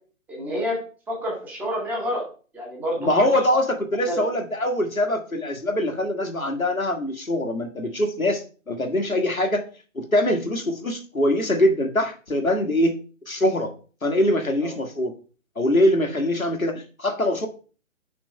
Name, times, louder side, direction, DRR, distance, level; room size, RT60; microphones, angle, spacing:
voice 1, 0.3-0.8 1.1-2.3 2.5-3.3 4.0-4.2 14.6-14.7, equal, 5° right, -2 dB, 0.9 m, -28 dB
voice 2, 3.0-9.6 9.9-13.0 13.3-13.7 14.0-15.1 15.5-17.5, left 1 dB, 85° left, 3 dB, 1.6 m, -23 dB
6.0 x 3.5 x 5.3 m, 0.38 s
figure-of-eight pair, 135°, 40 cm